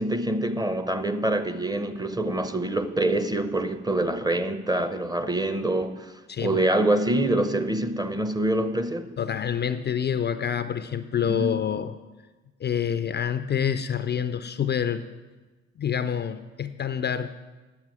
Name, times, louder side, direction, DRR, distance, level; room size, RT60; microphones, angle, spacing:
voice 1, 0.0-6.1 6.4-9.1 11.3-11.7, right 1 dB, 15° right, 0.6 m, -25 dB
voice 2, 6.3-6.6 9.2-11.9 12.6-15.0 15.8-17.3, left 8 dB, 35° left, 0.4 m, -27 dB
9.6 x 7.2 x 4.7 m
supercardioid pair, 65°, 30 cm